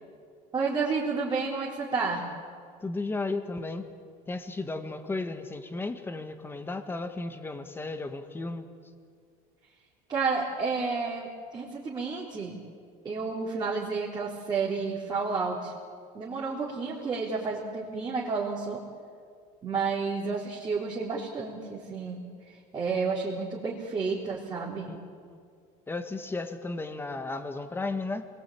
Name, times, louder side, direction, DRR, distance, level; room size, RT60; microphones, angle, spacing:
voice 1, 0.5-2.2 10.1-12.6 13.0-15.7 16.1-18.8 19.6-22.2 22.7-24.9, right 4 dB, 25° right, -5 dB, 3.9 m, -31 dB
voice 2, 2.8-3.9 4.3-8.7 24.9-25.0 25.2-25.4 25.9-28.2, left 3 dB, 15° left, 7 dB, 1.9 m, -34 dB
28.0 x 21.5 x 8.8 m, 2.2 s
cardioid pair, 140°, 17 cm